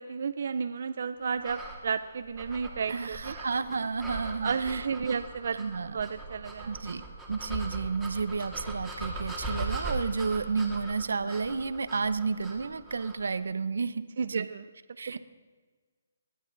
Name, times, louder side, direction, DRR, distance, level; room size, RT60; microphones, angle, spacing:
voice 1, 0.0-3.3 4.4-5.6 5.9-6.7 14.2-14.6 15.1-15.2, right 6 dB, 60° right, 9 dB, 0.5 m, -32 dB
sound 1, 1.4-13.3, right 2 dB, ahead, 2.4 m, -40 dB
voice 2, 2.9-5.1 5.5-6.0 6.6-14.5 15.0-15.2, right 4 dB, 85° right, 13 dB, 0.8 m, -32 dB
27.5 x 11.5 x 4.0 m, 1.4 s
hypercardioid pair, 165°, 0 cm